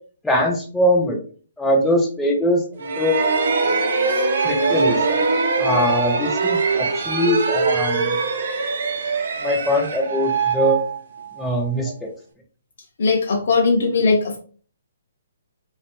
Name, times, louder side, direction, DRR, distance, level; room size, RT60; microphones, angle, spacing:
voice 1, 0.2-1.2 1.6-3.2 4.4-5.2 5.6-8.2 9.4-10.8 11.4-12.1, left 1 dB, 5° left, -1 dB, 0.5 m, -21 dB
sound 1, 2.8-11.5, right 4 dB, 65° right, 0.6 m, -22 dB
voice 2, 13.0-14.4, left 4 dB, 60° left, 1 dB, 0.4 m, -19 dB
2.4 x 2.2 x 2.9 m, 0.42 s
hypercardioid pair, 145°, 0 cm